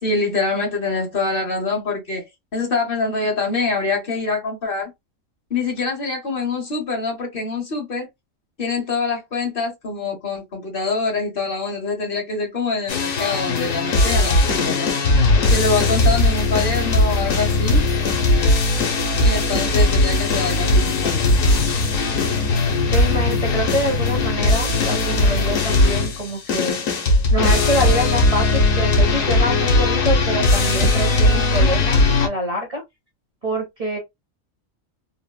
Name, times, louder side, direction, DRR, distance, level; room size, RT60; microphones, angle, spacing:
voice 1, 0.0-4.9 5.5-8.1 8.6-14.9 15.5-17.8 19.2-21.3, left 3 dB, 45° left, 1.1 m, -25 dB
sound 1, 12.9-32.3, left 2 dB, 80° left, 1.3 m, -18 dB
voice 2, 22.9-26.8 27.3-32.8 33.4-34.0, right 1 dB, 35° right, 0.7 m, -25 dB
3.9 x 2.1 x 2.2 m
omnidirectional pair, 1.4 m